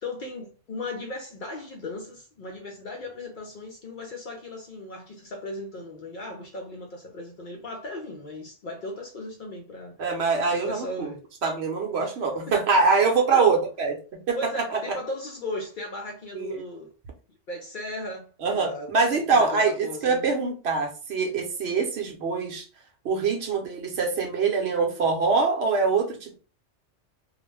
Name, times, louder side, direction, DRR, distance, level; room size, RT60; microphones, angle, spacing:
voice 1, 0.0-10.0 10.5-11.2 11.8-12.1 12.5-12.6 13.3-13.6 14.3-16.9 17.5-18.3 18.5-20.3, left 2 dB, 55° left, 0.6 m, -36 dB
voice 2, 10.0-11.1 11.4-14.8 16.3-16.6 18.4-22.7 23.0-26.3, right 4 dB, 65° right, 0.9 m, -24 dB
2.4 x 2.1 x 3.2 m
omnidirectional pair, 1.2 m